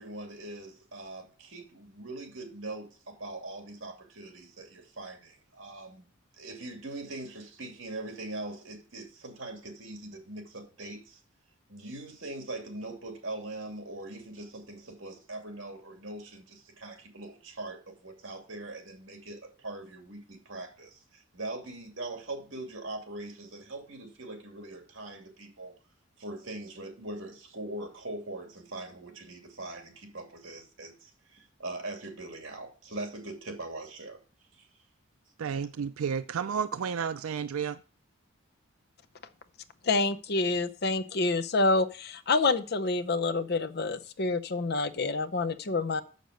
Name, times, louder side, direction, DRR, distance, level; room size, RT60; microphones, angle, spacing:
voice 1, 0.0-6.1 6.4-11.2 11.7-25.7 26.2-34.2 34.5-34.7, right 2 dB, 60° right, 2.5 m, -41 dB
voice 2, 35.4-37.8, right 7 dB, 90° right, 0.4 m, -31 dB
voice 3, 39.8-46.0, left 3 dB, 50° left, 0.6 m, -27 dB
6.8 x 6.6 x 6.4 m
head